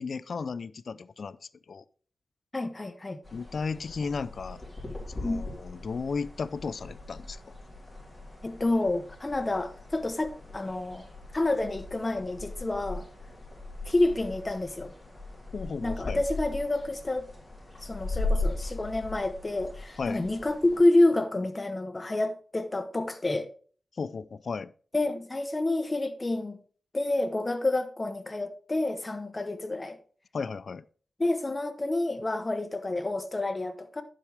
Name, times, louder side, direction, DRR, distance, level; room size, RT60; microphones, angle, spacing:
voice 1, 0.0-1.4 1.7-1.8 3.3-4.6 5.1-7.5 15.5-16.2 20.0-20.2 24.0-24.7 30.3-30.8, left 5 dB, 55° left, 0.5 m, -34 dB
voice 2, 2.5-3.2 5.2-5.4 8.4-11.1 11.3-13.1 13.9-14.9 15.8-17.3 17.8-23.5 24.9-26.6 26.9-30.0 31.2-34.0, left 2 dB, 25° left, 1.0 m, -28 dB
sound 1, 3.2-20.8, left 2 dB, 5° left, 4.0 m, -38 dB
10.5 x 7.5 x 3.5 m
wide cardioid pair, 130°, 0 cm